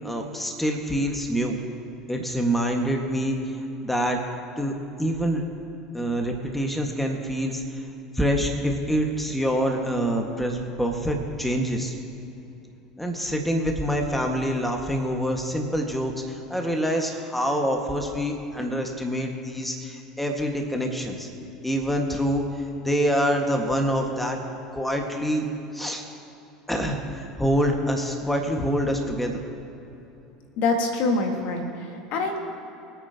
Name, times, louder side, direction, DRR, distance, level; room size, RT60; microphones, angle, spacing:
voice 1, 0.0-1.6 2.1-3.4 3.8-4.2 4.6-4.7 5.0-5.4 5.9-7.9 8.1-11.9 13.0-21.3 21.6-24.4 24.7-25.5 25.7-26.0 26.7-29.4, equal, 5° left, 2 dB, 1.8 m, -26 dB
voice 2, 30.6-32.4, left 3 dB, 55° left, 3 dB, 1.8 m, -25 dB
25.0 x 9.0 x 3.0 m, 2.9 s
hypercardioid pair, 80°, 3 cm